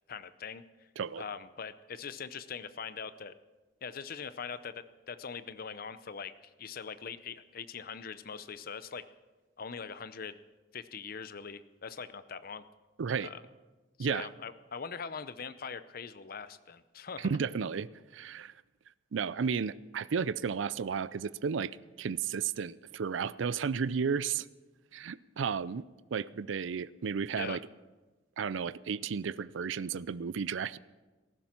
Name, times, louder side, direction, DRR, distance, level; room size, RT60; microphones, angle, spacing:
voice 1, 0.1-0.6 1.2-3.4 3.8-6.3 6.6-9.0 9.6-10.4 10.7-12.6 13.2-13.4 14.0-17.3 27.4-27.6, left 6 dB, 50° left, 0.6 m, -42 dB
voice 2, 13.0-13.3 14.0-14.3 17.2-18.5 19.1-24.5 24.9-25.8 26.1-27.6 28.4-30.8, right 6 dB, 85° right, 0.4 m, -33 dB
18.0 x 14.5 x 4.5 m
head